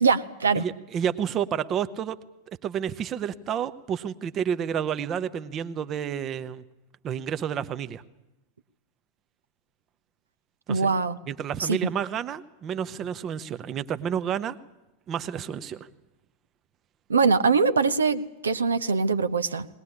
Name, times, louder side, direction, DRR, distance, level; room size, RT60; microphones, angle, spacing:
voice 1, 0.0-0.6 10.7-11.2 11.6-11.8 17.1-19.7, right 5 dB, 70° right, 12 dB, 0.9 m, -22 dB
voice 2, 0.5-2.2 2.6-6.6 7.0-8.0 10.7-10.9 11.3-14.6 15.1-15.9, right 8 dB, 30° right, 13 dB, 0.9 m, -30 dB
20.5 x 19.5 x 9.9 m, 0.98 s
figure-of-eight pair, 90°, 0 cm